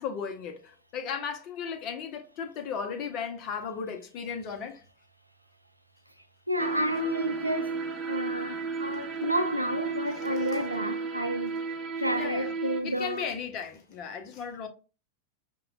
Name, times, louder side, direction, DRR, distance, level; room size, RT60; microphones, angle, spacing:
voice 1, 0.0-4.8 12.1-12.5 12.8-14.7, left 6 dB, 40° left, 0.7 m, -36 dB
voice 2, 6.5-11.6 12.0-13.3, equal, 90° right, 0.3 m, -31 dB
sound 1, 6.6-12.8, right 4 dB, 25° right, 0.6 m, -33 dB
5.2 x 2.2 x 2.3 m
figure-of-eight pair, 90°, 0 cm